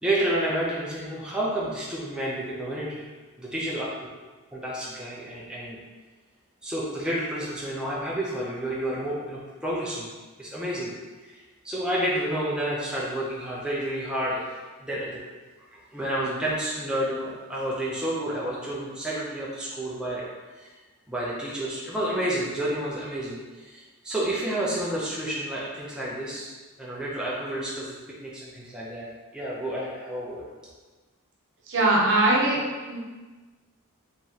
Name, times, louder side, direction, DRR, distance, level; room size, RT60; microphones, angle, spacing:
voice 1, 0.0-3.0 3.4-3.9 4.5-5.8 6.6-10.1 10.4-10.9 11.3-15.2 15.7-20.2 20.5-20.8 21.1-26.5 26.8-27.9 28.2-29.1 29.3-30.4, right 1 dB, 5° right, -7 dB, 0.5 m, -30 dB
voice 2, 31.7-33.0, right 2 dB, 60° right, -3 dB, 0.8 m, -22 dB
3.9 x 3.0 x 2.7 m, 1.3 s
head